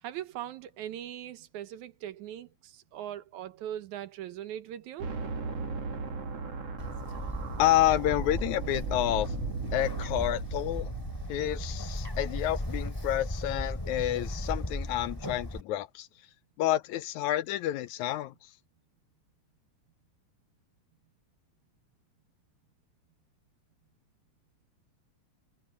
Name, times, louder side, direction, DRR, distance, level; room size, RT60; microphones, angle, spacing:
voice 1, 0.0-5.1, right 11 dB, 75° right, 2.3 m, -40 dB
sound 1, 5.0-13.1, right 4 dB, 50° right, 3.7 m, -38 dB
Bird, 6.8-15.6, left 1 dB, 5° left, 3.2 m, -36 dB
voice 2, 7.6-9.3 9.7-10.9 11.3-16.1 16.6-18.3, left 13 dB, 75° left, 2.0 m, -29 dB
omnidirectional pair, 3.6 m